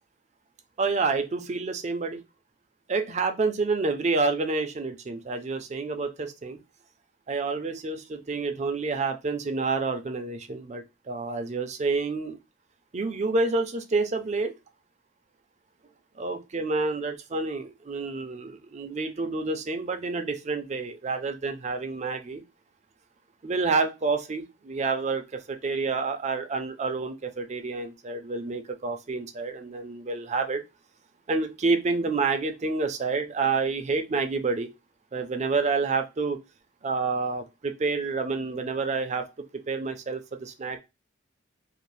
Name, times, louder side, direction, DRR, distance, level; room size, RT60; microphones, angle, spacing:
voice 1, 0.8-2.2 2.9-6.6 7.3-12.4 12.9-14.5 16.2-22.4 23.4-30.6 31.3-34.7 35.1-36.4 36.8-39.3 39.7-40.8, right 4 dB, 35° right, 7 dB, 0.4 m, -28 dB
2.6 x 2.1 x 3.1 m, 0.25 s
head